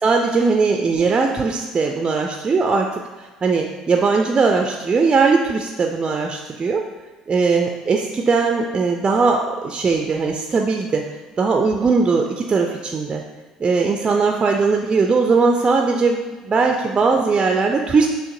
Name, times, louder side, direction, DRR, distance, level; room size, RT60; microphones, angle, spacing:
voice 1, 0.0-6.8 7.3-11.0 11.4-13.2 13.6-18.1, right 4 dB, 25° right, 2 dB, 0.3 m, -19 dB
6.3 x 2.5 x 2.6 m, 1.2 s
figure-of-eight pair, 55°, 3 cm